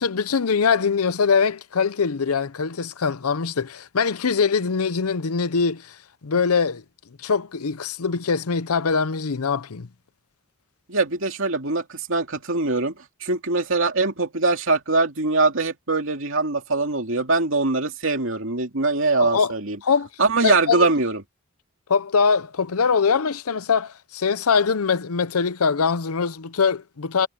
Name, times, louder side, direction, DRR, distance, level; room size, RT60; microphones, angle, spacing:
voice 1, 0.0-6.0 6.2-6.8 7.2-9.9 19.2-19.5 19.8-20.1 20.4-20.9 21.9-27.3, left 5 dB, 85° left, 0.7 m, -22 dB
voice 2, 10.9-12.9 13.2-19.8 20.2-21.2, right 3 dB, 60° right, 2.8 m, -22 dB
head